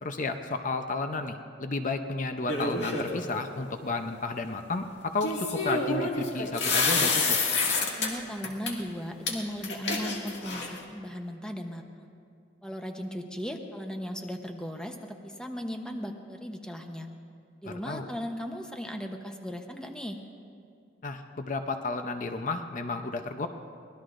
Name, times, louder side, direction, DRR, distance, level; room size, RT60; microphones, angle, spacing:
voice 1, 0.0-7.4 17.6-18.1 21.0-23.5, left 3 dB, 45° left, 7 dB, 0.7 m, -32 dB
sound 1, 2.5-3.2 5.2-8.1 8.4-8.7 9.3-9.4 9.6-10.8, left 3 dB, 75° left, 2.2 m, -28 dB
voice 2, 8.0-12.1 12.6-17.1 17.6-20.2, equal, 5° left, 3 dB, 0.9 m, -37 dB
24.0 x 19.0 x 2.6 m, 2.4 s
head